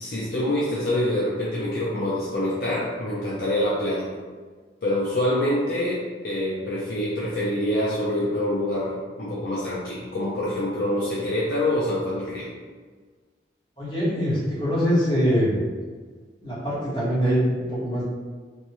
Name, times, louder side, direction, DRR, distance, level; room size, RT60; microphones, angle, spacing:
voice 1, 0.0-4.1 4.8-12.5, left 1 dB, 60° left, -7 dB, 0.6 m, -26 dB
voice 2, 13.8-15.6 16.4-18.0, equal, 30° left, -11 dB, 1.5 m, -23 dB
3.4 x 2.6 x 2.9 m, 1.5 s
head